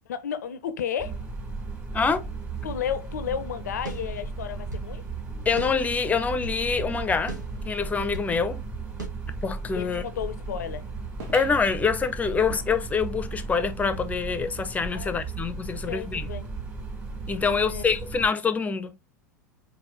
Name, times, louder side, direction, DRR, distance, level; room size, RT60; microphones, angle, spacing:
voice 1, 0.1-1.2 2.6-5.0 9.7-10.8 14.9-15.2 15.8-16.5 17.4-18.0, left 8 dB, 65° left, 0.6 m, -33 dB
sound 1, 1.0-18.3, right 4 dB, 25° right, 2.7 m, -36 dB
sound 2, 3.9-4.9 5.6-6.6 7.3-8.4 9.0-9.1, right 3 dB, 85° right, 1.8 m, -39 dB
voice 2, 5.4-7.4 7.6-8.6 9.4-10.0 11.3-16.3 17.3-19.0, left 5 dB, 15° left, 0.8 m, -25 dB
sound 3, 11.2-14.2 14.6-14.7 14.9-15.0 15.8-15.9, right 2 dB, 50° right, 1.5 m, -45 dB
4.7 x 4.2 x 2.6 m
figure-of-eight pair, 80°, 10 cm